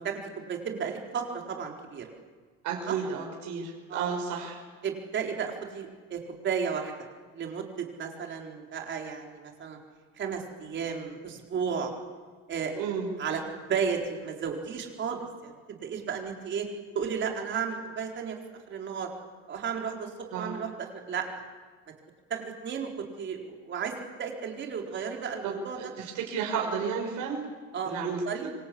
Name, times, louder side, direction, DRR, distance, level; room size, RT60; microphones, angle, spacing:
voice 1, 0.0-2.1 2.9-3.0 3.9-4.1 4.8-6.9 7.3-9.8 10.2-11.9 12.5-12.8 13.2-16.7 16.9-18.4 18.7-19.1 19.5-21.3 22.3-22.9 23.2-25.9 27.7-28.0 28.3-28.4, right 6 dB, 35° right, 2 dB, 4.4 m, -33 dB
voice 2, 2.6-4.6 12.7-13.1 20.3-20.5 25.4-27.4 27.9-28.5, right 6 dB, 60° right, 0 dB, 5.5 m, -32 dB
26.0 x 25.5 x 8.7 m, 1.5 s
cardioid pair, 175°, 34 cm